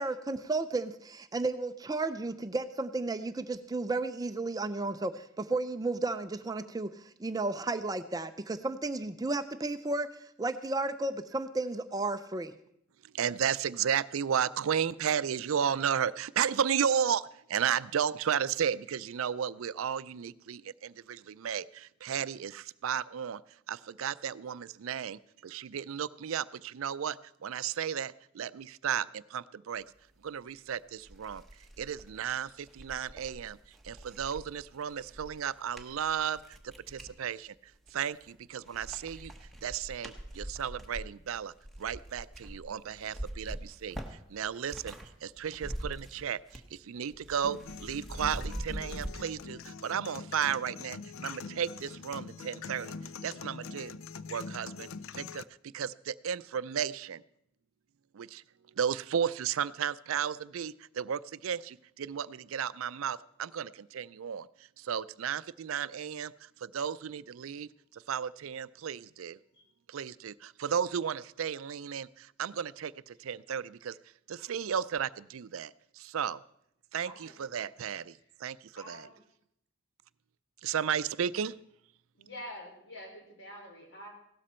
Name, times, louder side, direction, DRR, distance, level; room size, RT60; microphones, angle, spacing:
voice 1, 0.0-10.1 10.4-12.5, right 2 dB, 20° right, 10 dB, 0.4 m, -33 dB
voice 2, 13.0-23.4 23.7-29.8 30.2-31.4 31.8-37.5 37.9-39.3 39.6-45.0 45.2-52.9 53.2-54.0 54.3-57.2 58.1-58.4 58.7-69.4 69.9-74.0 74.3-76.4 76.9-79.1 80.6-81.6, right 8 dB, 85° right, 17 dB, 0.4 m, -34 dB
sound 1, 30.5-30.6 31.0-37.2 37.7-38.3 38.6-45.1 45.4-46.8 47.0-49.1, right 1 dB, ahead, 1.1 m, -43 dB
sound 2, 47.4-55.4, left 5 dB, 80° left, 0.5 m, -44 dB
voice 3, 77.0-77.6 78.2-78.3 78.8-79.1 82.1-84.1, equal, 60° left, 0 dB, 4.2 m, -47 dB
16.5 x 12.5 x 4.3 m, 0.76 s
head